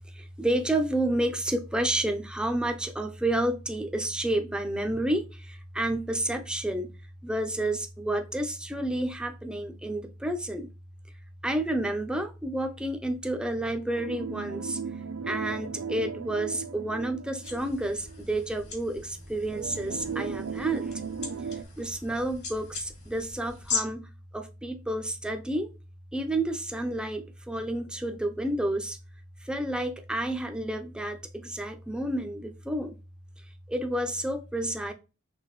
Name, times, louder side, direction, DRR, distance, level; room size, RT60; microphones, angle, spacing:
voice 1, 0.1-6.9 7.2-10.7 11.4-14.8 15.3-21.0 21.8-24.1 24.3-25.7 26.1-29.0 29.4-33.0 33.7-34.9, right 1 dB, 5° right, 0.5 m, -30 dB
sound 1, 14.0-18.3 18.7-18.8 19.5-21.6, right 6 dB, 85° right, 0.4 m, -36 dB
sound 2, 17.4-23.8, left 5 dB, 55° left, 1.9 m, -39 dB
5.8 x 3.0 x 3.0 m
head